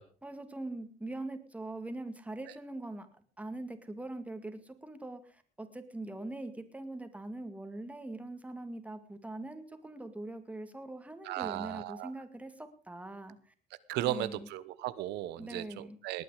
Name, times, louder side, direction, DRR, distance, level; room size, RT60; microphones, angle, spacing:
voice 1, 0.2-3.1 3.4-13.4 14.0-14.5 15.4-16.0, right 2 dB, 10° right, 8 dB, 2.0 m, -42 dB
voice 2, 11.2-12.1 13.9-16.2, right 13 dB, 85° right, 14 dB, 0.9 m, -36 dB
19.5 x 9.4 x 4.9 m, 0.40 s
cardioid pair, 110°, 17 cm